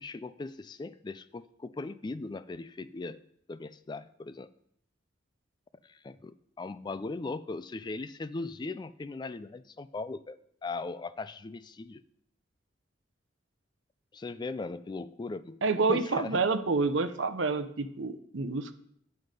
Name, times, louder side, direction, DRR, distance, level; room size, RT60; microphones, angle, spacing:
voice 1, 0.0-3.2 3.5-4.5 5.8-12.0 14.1-15.6 15.9-16.4, left 3 dB, 25° left, 15 dB, 0.3 m, -39 dB
voice 2, 15.6-18.7, right 4 dB, 85° right, 11 dB, 0.7 m, -28 dB
9.3 x 7.8 x 5.1 m, 0.70 s
head